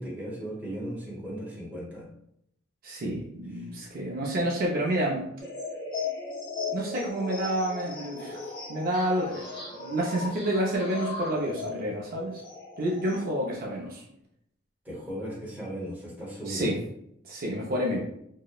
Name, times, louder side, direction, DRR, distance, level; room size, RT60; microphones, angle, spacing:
voice 1, 0.0-2.0 3.5-3.7 14.8-16.7, equal, 10° right, -6 dB, 0.8 m, -37 dB
voice 2, 2.8-5.2 6.7-8.4 8.7-12.4 12.8-14.0 16.5-16.7 17.3-18.0, right 1 dB, 50° right, -3 dB, 0.4 m, -29 dB
sound 1, 5.4-13.5, left 4 dB, 25° left, 0.8 m, -37 dB
2.8 x 2.0 x 2.3 m, 0.75 s
head